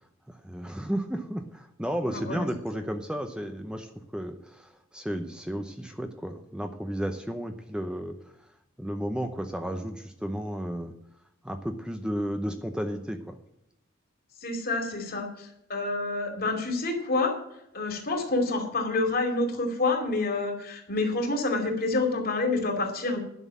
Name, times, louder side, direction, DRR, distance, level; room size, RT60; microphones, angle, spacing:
voice 1, 0.3-8.1 8.8-10.9 11.4-13.4, equal, 5° right, 6 dB, 0.7 m, -33 dB
voice 2, 2.0-2.5 14.4-17.4 17.7-23.2, left 3 dB, 50° left, 3 dB, 2.6 m, -28 dB
11.0 x 6.2 x 8.2 m, 0.81 s
head